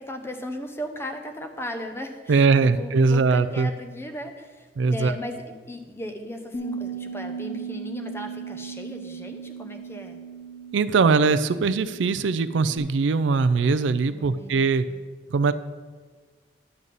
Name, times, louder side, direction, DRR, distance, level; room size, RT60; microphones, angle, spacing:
voice 1, 0.0-10.2 14.1-15.0, left 1 dB, 15° left, 5 dB, 0.8 m, -37 dB
voice 2, 2.3-3.7 4.8-5.1 10.7-14.9 15.3-15.5, right 4 dB, 80° right, 13 dB, 0.4 m, -21 dB
Bass guitar, 6.5-12.8, right 6 dB, 45° left, 1.1 m, -37 dB
11.0 x 4.0 x 7.5 m, 1.4 s
head